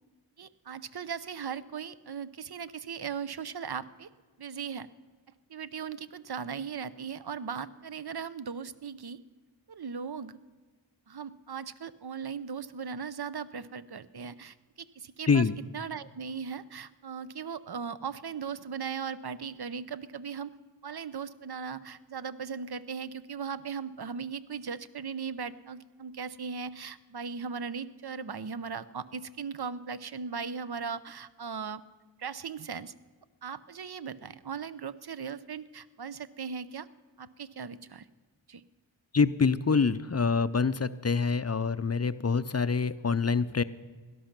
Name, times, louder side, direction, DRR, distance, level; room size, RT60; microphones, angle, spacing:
voice 1, 0.4-4.1 4.4-4.9 5.5-9.2 9.7-10.4 11.1-15.5 15.7-20.5 20.8-31.8 32.2-32.9 33.4-36.9 37.2-38.0 38.5-38.6, right 6 dB, 55° right, 15 dB, 0.7 m, -38 dB
voice 2, 39.1-43.6, left 5 dB, 35° left, 14 dB, 0.5 m, -26 dB
17.0 x 12.0 x 5.9 m, 1.4 s
wide cardioid pair, 45°, 47 cm